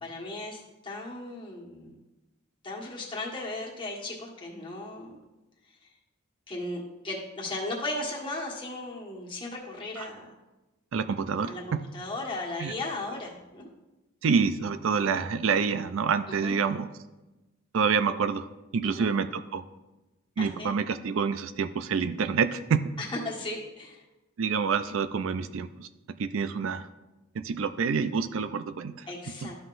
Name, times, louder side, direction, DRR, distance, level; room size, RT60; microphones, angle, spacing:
voice 1, 0.0-2.0 2.6-5.2 5.8-5.9 6.5-10.3 11.4-13.7 16.3-16.6 18.8-19.1 20.4-20.7 23.0-24.0 29.1-29.5, left 2 dB, 25° left, -2 dB, 1.4 m, -36 dB
voice 2, 10.9-11.8 12.6-12.7 14.2-16.9 17.7-18.5 18.7-19.6 20.4-22.9 24.4-25.9 26.2-26.9 27.3-29.1 29.4-29.5, right 5 dB, 65° right, 11 dB, 0.4 m, -27 dB
13.0 x 5.8 x 2.5 m, 1.1 s
head